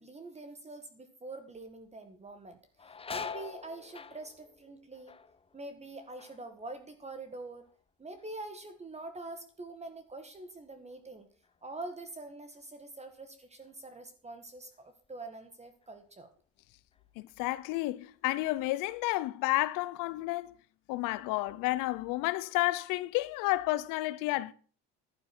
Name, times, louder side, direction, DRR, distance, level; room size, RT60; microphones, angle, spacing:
voice 1, 0.0-5.2 5.5-7.7 8.0-11.3 11.6-16.3, right 2 dB, 20° right, 1.9 m, -45 dB
sound 1, 1.6-1.9 2.3-7.9 8.2-8.8 9.3-12.2 12.5-12.6 13.6-13.8 14.3-15.4 15.8-16.0 16.6-17.2 17.5-18.7, left 5 dB, 15° left, 0.8 m, -47 dB
voice 2, 17.2-20.5 20.9-24.5, left 19 dB, 80° left, 0.9 m, -31 dB
12.0 x 9.2 x 6.2 m
cardioid pair, 110°, 32 cm